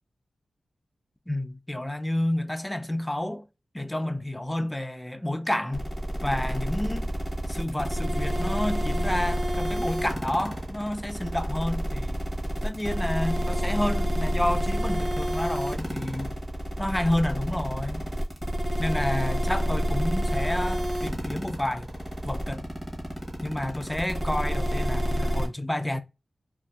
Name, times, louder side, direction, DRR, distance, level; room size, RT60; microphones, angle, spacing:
voice 1, 1.3-3.5 3.7-5.9 6.2-7.1 7.5-12.2 12.6-16.4 16.8-18.1 18.8-21.9 22.2-22.6 23.4-26.0, left 1 dB, 10° left, 0.3 m, -30 dB
sound 1, 5.7-25.5, equal, 20° right, 0.9 m, -28 dB
2.6 x 2.5 x 2.2 m
wide cardioid pair, 120°, 0 cm